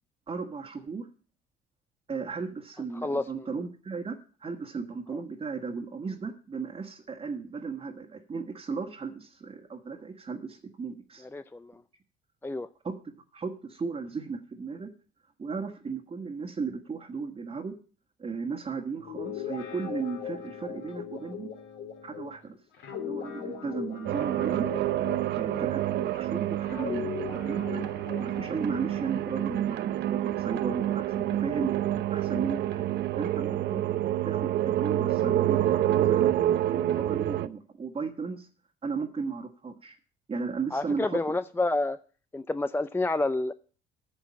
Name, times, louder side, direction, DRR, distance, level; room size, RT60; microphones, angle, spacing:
voice 1, 0.3-1.1 2.1-11.3 12.8-12.9 13.3-14.9 15.4-17.7 18.2-21.5 22.0-22.6 23.0-24.7 25.3-27.8 28.2-33.9 34.2-38.5 38.8-40.0 40.3-41.4, right 5 dB, 30° right, 1 dB, 1.6 m, -35 dB
voice 2, 3.0-3.5 11.3-11.7 12.4-12.7 40.7-42.0 42.3-43.5, left 2 dB, 10° left, 12 dB, 0.5 m, -29 dB
Guitar, 19.0-26.2 26.6-30.3, left 8 dB, 70° left, 3.3 m, -40 dB
sound 1, 24.1-37.5, right 13 dB, 60° right, 0.7 m, -28 dB
10.0 x 6.3 x 8.5 m, 0.41 s
supercardioid pair, 75°, 20 cm